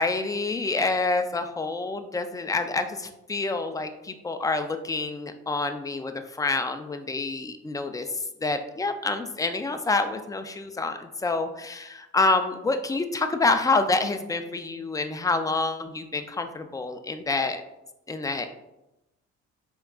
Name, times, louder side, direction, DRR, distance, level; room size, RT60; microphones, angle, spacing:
voice 1, 0.0-17.6 18.1-18.5, left 3 dB, 10° left, 7 dB, 0.3 m, -27 dB
4.5 x 3.5 x 2.3 m, 0.91 s
cardioid pair, 90°, 30 cm